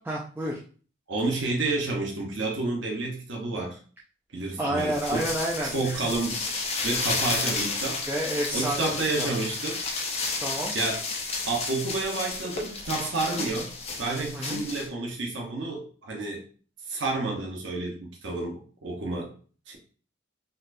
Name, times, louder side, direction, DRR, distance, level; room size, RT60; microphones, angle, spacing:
voice 1, 0.0-0.6 4.6-6.0 8.1-9.3 10.4-10.7 14.3-14.6, right 1 dB, 10° right, -4 dB, 0.4 m, -30 dB
voice 2, 1.1-3.8 4.3-5.3 5.6-6.4 6.8-8.0 8.5-9.8 10.7-11.0 11.4-16.4 16.9-19.3 19.7-19.8, right 3 dB, 90° right, 0 dB, 0.8 m, -30 dB
sound 1, 4.8-14.9, left 4 dB, 35° left, 0.7 m, -32 dB
4.1 x 2.4 x 2.5 m, 0.40 s
head